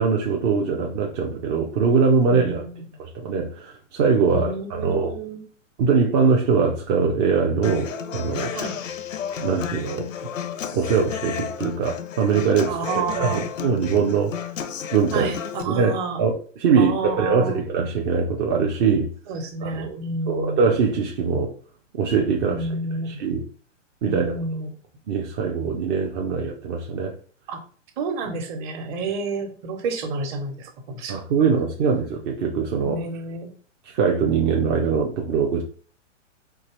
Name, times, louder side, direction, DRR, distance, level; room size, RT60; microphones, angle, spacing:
voice 1, 0.0-2.7 3.0-5.1 5.8-8.5 9.4-10.1 10.7-14.3 14.9-15.3 15.6-19.1 19.6-20.0 20.3-21.5 21.9-22.7 23.1-23.5 24.0-24.3 25.1-27.2 31.1-33.0 33.9-35.6, right 5 dB, 25° right, 0 dB, 0.4 m, -22 dB
voice 2, 2.2-2.8 4.2-5.4 8.5-8.8 12.7-13.5 15.1-16.2 16.8-17.6 19.3-20.6 22.5-23.2 24.1-24.7 27.5-27.6 28.0-31.2 32.8-33.5, right 3 dB, 40° right, 4 dB, 1.2 m, -30 dB
Human voice / Acoustic guitar, 7.6-15.6, left 8 dB, 85° left, 0.7 m, -32 dB
4.4 x 2.9 x 3.1 m, 0.43 s
hypercardioid pair, 130°, 38 cm